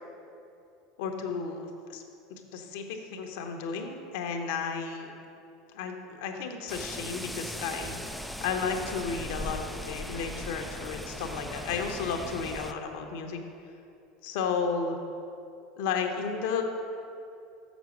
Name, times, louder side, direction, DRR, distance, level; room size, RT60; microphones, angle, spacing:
voice 1, 1.0-2.0 2.5-5.1 5.7-13.4 14.2-15.0 15.8-16.6, left 5 dB, 65° left, 4 dB, 0.9 m, -33 dB
sound 1, 6.7-12.7, equal, ahead, 0.4 m, -38 dB
6.7 x 6.1 x 6.3 m, 2.7 s
hypercardioid pair, 80°, 0 cm